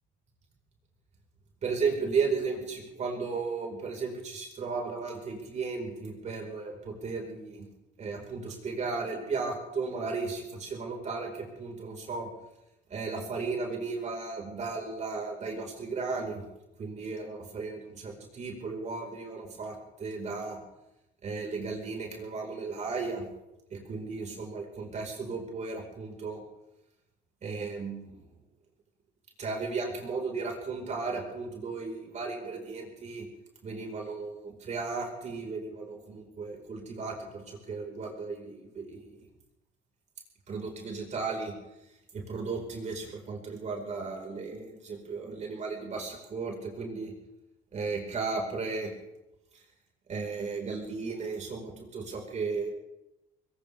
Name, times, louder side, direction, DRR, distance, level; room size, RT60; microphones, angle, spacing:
voice 1, 1.6-7.6 8.0-12.3 12.9-16.4 16.8-20.6 21.2-23.3 23.7-26.4 27.4-28.2 29.4-33.3 33.6-39.3 40.5-41.5 42.1-47.1 47.7-48.9 50.1-52.7, right 4 dB, 45° right, 1 dB, 4.6 m, -35 dB
21.5 x 19.5 x 3.5 m, 0.93 s
cardioid pair, 110°, 17 cm